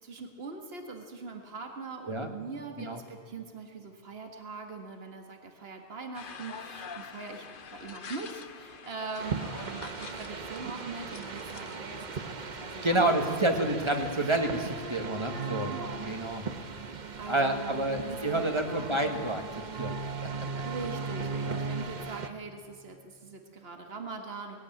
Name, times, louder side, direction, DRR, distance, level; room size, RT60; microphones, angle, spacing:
voice 1, 0.0-7.5 7.7-13.5 14.2-14.3 15.6-16.0 17.2-19.0 20.6-24.6, right 4 dB, 70° right, 4 dB, 1.9 m, -42 dB
sound 1, 6.1-11.8, left 6 dB, 60° left, 1.1 m, -46 dB
sound 2, 9.2-22.3, right 4 dB, 50° right, 1.1 m, -38 dB
voice 2, 12.8-15.7 16.0-16.5 17.3-20.0 20.2-20.3 21.5-21.6, right 1 dB, 25° right, 4 dB, 1.9 m, -29 dB
20.0 x 16.5 x 9.2 m, 2.1 s
omnidirectional pair, 1.1 m